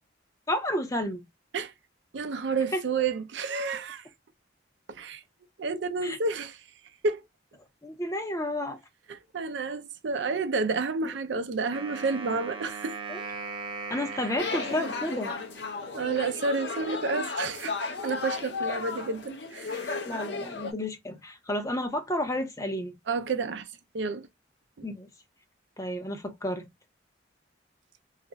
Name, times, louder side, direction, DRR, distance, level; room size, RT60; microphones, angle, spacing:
voice 1, 0.5-1.3 2.7-2.8 6.0-6.2 7.8-8.8 11.3-11.4 13.1-13.2 13.9-15.4 20.1-22.9 24.8-25.1 25.8-26.7, left 1 dB, 15° left, 0.5 m, -31 dB
voice 2, 2.1-4.1 4.9-5.2 5.6-6.6 7.0-7.2 9.1-13.0 15.9-20.0 23.1-23.7 23.9-24.3 24.8-24.9, right 4 dB, 70° right, 0.4 m, -30 dB
Wind instrument woodwind instrument, 11.7-16.0, right 4 dB, 30° right, 0.6 m, -39 dB
sound 1, 14.4-20.7, left 4 dB, 60° left, 0.6 m, -34 dB
2.4 x 2.0 x 3.8 m
head